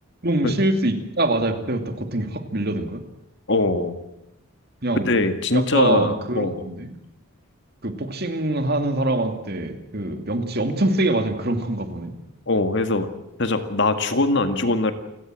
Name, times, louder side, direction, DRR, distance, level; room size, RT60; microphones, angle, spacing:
voice 1, 0.2-3.0 4.8-5.1 5.5-6.9 7.8-12.1, right 1 dB, 45° right, 7 dB, 2.6 m, -24 dB
voice 2, 3.5-3.9 5.0-6.6 12.5-13.1 13.4-14.9, left 2 dB, 50° left, 8 dB, 2.1 m, -22 dB
29.5 x 17.0 x 7.7 m, 0.85 s
head